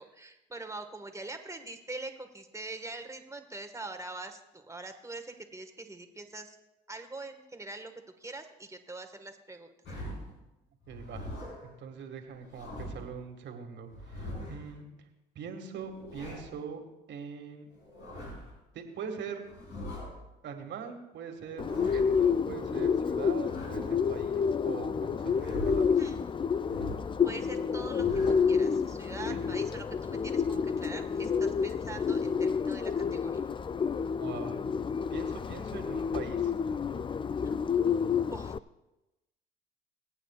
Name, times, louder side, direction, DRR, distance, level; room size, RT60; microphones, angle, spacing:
voice 1, 0.0-6.6 6.9-7.9 8.2-9.7 26.0-26.3 27.2-28.2 28.5-33.4 37.4-37.5 38.3-38.5, right 2 dB, 15° right, 6 dB, 1.7 m, -43 dB
sound 1, 9.8-10.4 10.8-11.7 12.3-13.1 13.9-14.8 15.7-16.6 17.7-18.5 19.4-20.2 21.4-22.2 23.3-24.1 25.2-26.0 26.6-27.2 27.7-28.6, left 1 dB, 65° left, 5.2 m, -42 dB
voice 2, 10.9-11.4 11.6-14.9 15.4-16.8 17.1-17.7 18.7-19.4 20.4-25.9 29.3-29.4 34.2-34.6 35.1-36.5, right 6 dB, 60° right, 5 dB, 2.1 m, -42 dB
Bird, 21.6-38.6, left 6 dB, 25° left, 0.4 m, -29 dB
23.5 x 9.0 x 2.5 m, 0.97 s
hypercardioid pair, 60°, 21 cm